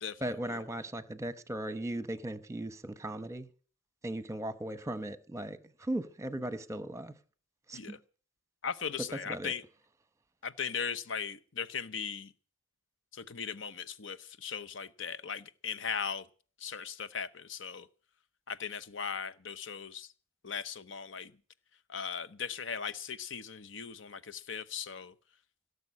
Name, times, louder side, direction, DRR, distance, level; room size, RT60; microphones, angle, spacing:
voice 1, 0.2-3.5 4.0-7.1 7.7-8.0 9.1-9.5, right 1 dB, 15° right, 0.9 m, -37 dB
voice 2, 8.6-9.6 10.4-12.3 13.1-16.3 16.6-17.9 18.5-20.1 20.4-21.3 21.9-25.1, left 6 dB, 70° left, 0.9 m, -38 dB
17.0 x 6.9 x 9.5 m
head